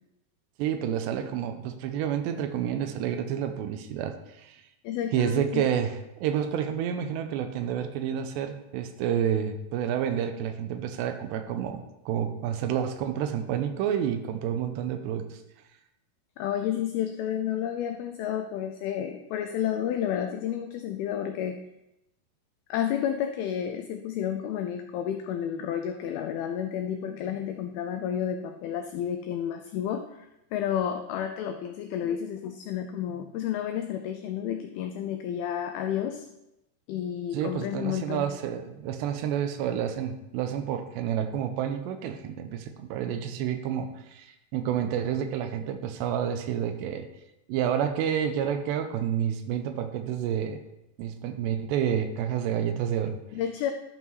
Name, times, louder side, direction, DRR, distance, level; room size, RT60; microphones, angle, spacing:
voice 1, 0.6-4.6 5.1-5.9 6.2-15.4 37.3-47.1 47.5-50.6 51.0-53.2, right 9 dB, 85° right, 7 dB, 2.9 m, -29 dB
voice 2, 4.8-5.7 16.4-21.6 22.7-36.3 36.9-38.3 53.3-53.7, left 9 dB, 85° left, 6 dB, 2.1 m, -31 dB
12.0 x 5.6 x 4.6 m, 0.90 s
omnidirectional pair, 5.0 m